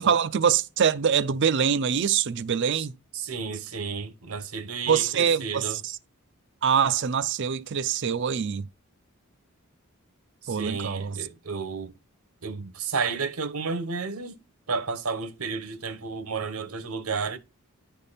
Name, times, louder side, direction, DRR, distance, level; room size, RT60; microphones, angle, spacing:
voice 1, 0.0-2.9 4.9-6.0 6.6-8.7 10.5-11.2, right 7 dB, 55° right, 0.5 m, -24 dB
voice 2, 3.1-5.8 10.4-11.9 12.4-14.4 14.7-17.4, right 5 dB, 85° right, 1.0 m, -32 dB
10.5 x 3.5 x 4.1 m
head